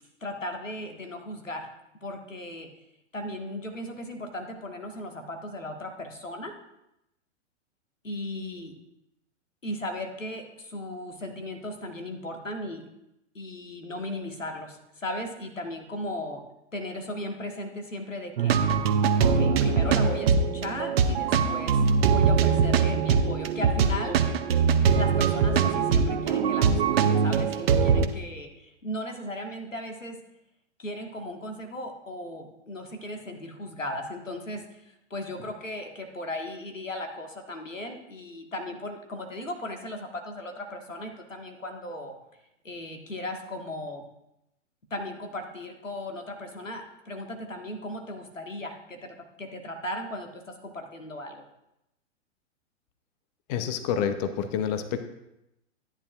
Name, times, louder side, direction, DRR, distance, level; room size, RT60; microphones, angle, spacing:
voice 1, 0.2-1.7 2.0-2.7 3.1-6.5 8.0-8.7 9.6-12.9 13.4-16.4 16.7-18.6 19.2-21.8 22.1-24.2 24.9-30.2 30.8-42.2 42.6-44.0 44.9-51.4, left 1 dB, 85° left, 3 dB, 1.7 m, -36 dB
sound 1, 18.4-28.1, right 6 dB, 55° right, 0.9 m, -22 dB
voice 2, 53.5-55.1, left 8 dB, 35° left, 9 dB, 0.8 m, -28 dB
13.0 x 9.9 x 2.5 m, 0.87 s
figure-of-eight pair, 105°, 37 cm